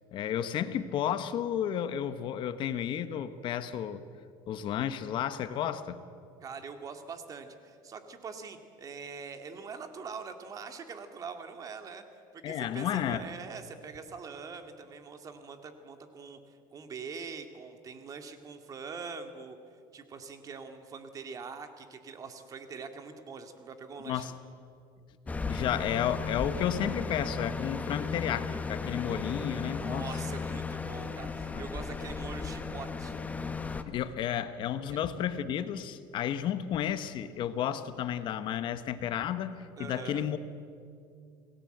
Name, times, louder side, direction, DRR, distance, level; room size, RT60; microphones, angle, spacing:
voice 1, 0.1-4.0 4.5-6.0 12.4-13.2 24.1-24.3 25.3-30.1 31.5-31.6 33.9-40.4, left 10 dB, 50° left, 11 dB, 1.2 m, -32 dB
voice 2, 6.4-19.6 19.9-24.2 29.5-33.1 34.9-35.0 39.8-40.2, right 5 dB, 35° right, 7 dB, 2.3 m, -43 dB
sound 1, 25.3-33.8, left 4 dB, 15° left, 1.2 m, -35 dB
28.0 x 19.0 x 8.0 m, 2.4 s
cardioid pair, 130°, 11 cm